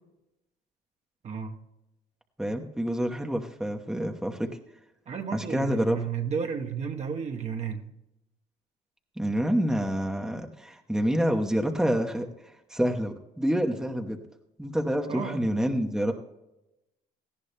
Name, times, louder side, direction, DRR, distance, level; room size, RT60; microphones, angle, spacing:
voice 1, 1.2-1.6 5.1-7.9 15.1-15.4, right 6 dB, 40° right, 3 dB, 1.0 m, -32 dB
voice 2, 2.4-4.5 5.3-6.0 9.2-12.3 12.7-14.2 14.6-16.1, equal, 5° right, 3 dB, 1.0 m, -27 dB
18.0 x 15.0 x 2.2 m, 0.91 s
cardioid pair, 110°, 17 cm